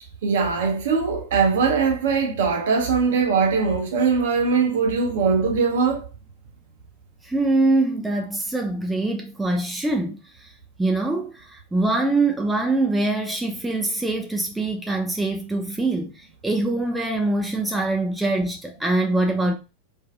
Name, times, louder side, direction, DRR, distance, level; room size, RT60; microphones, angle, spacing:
voice 1, 0.2-6.1, right 5 dB, 60° right, 0.6 m, -21 dB
voice 2, 7.2-10.5 10.8-19.5, right 2 dB, 5° right, 0.3 m, -24 dB
2.5 x 2.3 x 2.5 m
figure-of-eight pair, 90°, 0 cm